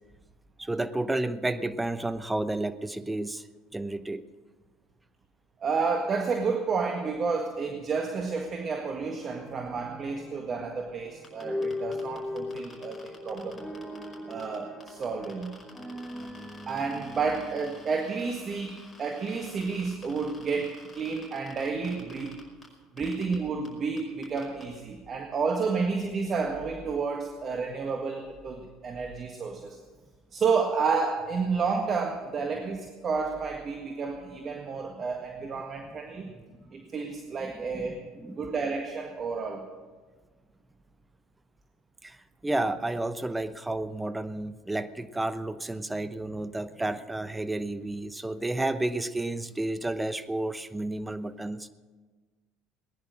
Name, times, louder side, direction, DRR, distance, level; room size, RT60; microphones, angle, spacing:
voice 1, 0.6-3.5 3.7-4.2 36.6-36.7 37.4-38.5 42.0-42.2 42.4-51.7, right 2 dB, 10° right, 13 dB, 0.9 m, -31 dB
voice 2, 5.6-13.7 14.3-15.5 16.7-22.4 22.9-29.8 30.3-36.3 36.7-38.0 38.4-39.7, right 5 dB, 40° right, 4 dB, 1.7 m, -30 dB
sound 1, 9.2-19.3, left 2 dB, 5° left, 1.7 m, -40 dB
sound 2, 11.2-14.6 14.8-22.7 23.0-23.3 23.6-23.7 24.0-24.6, left 4 dB, 30° left, 5.3 m, -51 dB
19.0 x 10.5 x 6.4 m, 1.4 s
hypercardioid pair, 75°, 0 cm